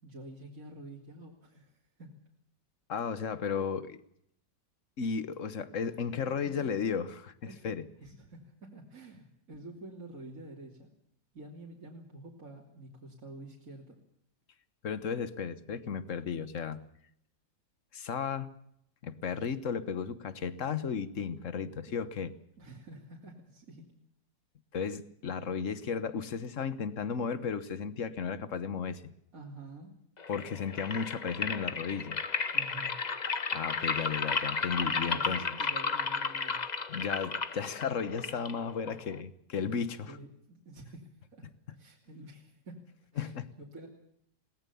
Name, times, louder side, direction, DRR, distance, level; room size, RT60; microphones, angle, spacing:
voice 1, 0.0-2.1 5.8-5.9 6.3-6.4 7.5-7.7 8.0-10.9 11.3-13.9 21.8-21.9 22.6-23.9 29.3-29.9 32.5-33.0 35.1-36.6 40.1-42.8 43.1-43.9, right 2 dB, 50° right, -2 dB, 3.4 m, -48 dB
voice 2, 2.9-4.0 5.0-7.9 14.8-16.8 17.9-18.5 19.0-22.3 24.7-29.0 30.3-32.2 33.5-35.5 36.9-40.2 43.2-43.5, left 6 dB, 50° left, 15 dB, 1.4 m, -34 dB
sound 1, 30.2-39.2, left 5 dB, 30° left, 0.8 m, -33 dB
21.5 x 18.5 x 7.0 m, 0.72 s
omnidirectional pair, 1.9 m